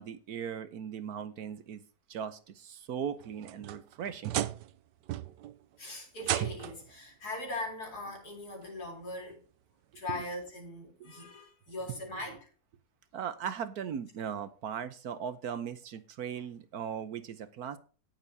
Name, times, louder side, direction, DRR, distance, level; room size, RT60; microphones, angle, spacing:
voice 1, 0.0-1.8 2.1-4.4 10.1-10.2 13.1-17.8, right 8 dB, 65° right, 1.2 m, -38 dB
sound 1, 3.2-4.8 5.1-5.6 6.2-6.9 8.1-8.2 8.8-8.9 10.5-10.6, right 13 dB, 90° right, 1.3 m, -35 dB
voice 2, 5.8-9.4 9.9-12.5, left 2 dB, 65° left, 4.3 m, -40 dB
18.0 x 6.8 x 2.7 m
omnidirectional pair, 1.8 m